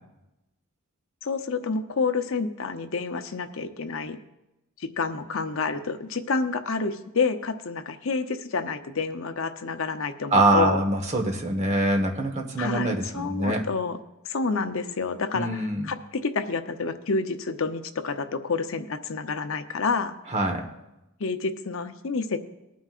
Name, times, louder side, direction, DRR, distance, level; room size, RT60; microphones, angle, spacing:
voice 1, 1.2-4.2 4.8-10.8 12.6-14.0 14.3-20.1 21.2-22.4, left 4 dB, 60° left, 8 dB, 0.7 m, -29 dB
voice 2, 10.3-13.6 15.3-15.8 20.3-20.7, right 2 dB, 30° right, 3 dB, 1.3 m, -24 dB
20.0 x 9.3 x 2.5 m, 0.94 s
head